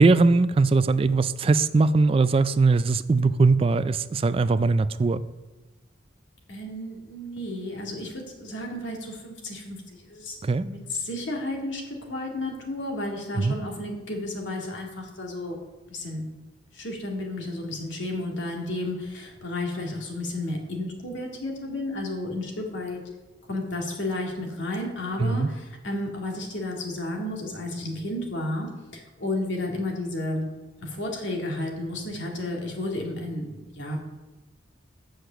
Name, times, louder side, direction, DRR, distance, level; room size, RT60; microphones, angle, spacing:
voice 1, 0.0-5.2 10.4-10.7 13.4-13.5 25.2-25.5, right 3 dB, 30° right, 14 dB, 0.3 m, -20 dB
voice 2, 6.5-10.4 10.6-15.6 15.9-16.2 16.7-23.0 23.5-30.5 30.8-34.0, left 1 dB, 75° left, 0 dB, 2.1 m, -32 dB
7.9 x 6.5 x 6.8 m, 1.1 s
head